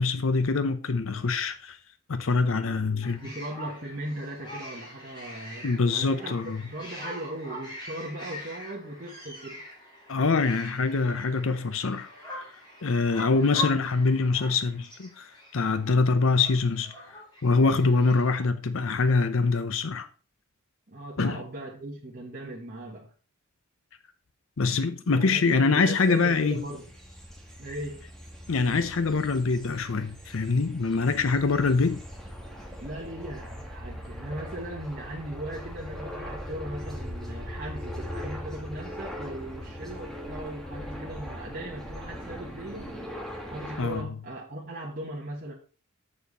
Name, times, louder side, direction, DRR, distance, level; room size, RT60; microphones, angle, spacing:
voice 1, 0.0-1.8 2.1-3.3 5.6-6.6 10.1-12.4 12.8-20.1 21.2-21.4 24.6-26.6 28.5-32.0 43.8-44.0, left 4 dB, 65° left, 0.6 m, -24 dB
sound 1, 3.0-18.4, right 1 dB, 20° left, 2.9 m, -43 dB
voice 2, 3.2-9.6 13.3-13.6 20.9-23.1 25.1-26.9 27.6-28.1 32.8-43.0 43.5-45.5, right 1 dB, 40° right, 1.4 m, -38 dB
sound 2, 25.7-44.0, equal, ahead, 1.3 m, -40 dB
7.2 x 6.8 x 4.1 m
head